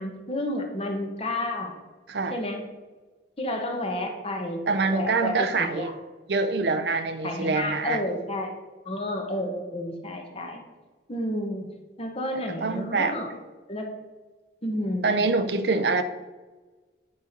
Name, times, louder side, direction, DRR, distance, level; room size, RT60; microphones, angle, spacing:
voice 1, 0.0-1.7 2.3-2.6 3.4-5.9 7.2-8.5 8.8-10.6 11.1-11.7 12.0-13.3 13.7-14.0 14.6-15.2, left 1 dB, 35° left, 1.2 m, -31 dB
voice 2, 4.7-5.9 6.3-8.0 12.6-13.2 15.0-16.0, right 3 dB, 70° right, 0.6 m, -25 dB
9.2 x 4.4 x 5.2 m
head